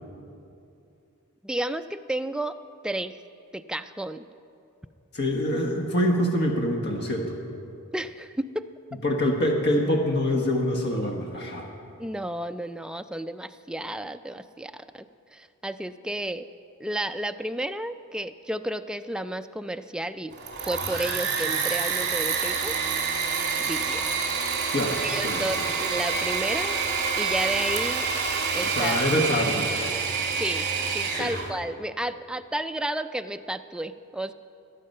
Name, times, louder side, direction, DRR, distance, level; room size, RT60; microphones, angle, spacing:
voice 1, 1.4-2.6 2.8-3.2 3.5-4.3 7.9-8.7 12.0-15.1 15.3-16.5 16.8-20.3 20.6-22.7 23.6-24.0 25.0-26.8 27.2-28.1 28.5-29.0 30.4-30.7 30.9-34.3, right 1 dB, 5° right, 9 dB, 0.3 m, -32 dB
voice 2, 5.1-7.4 9.0-11.7 24.7-25.7 28.6-29.7 31.1-31.3, left 1 dB, 50° left, 2 dB, 1.3 m, -25 dB
Engine / Mechanisms, 20.3-31.5, right 5 dB, 55° right, 2.2 m, -27 dB
19.5 x 8.6 x 5.5 m, 2.6 s
head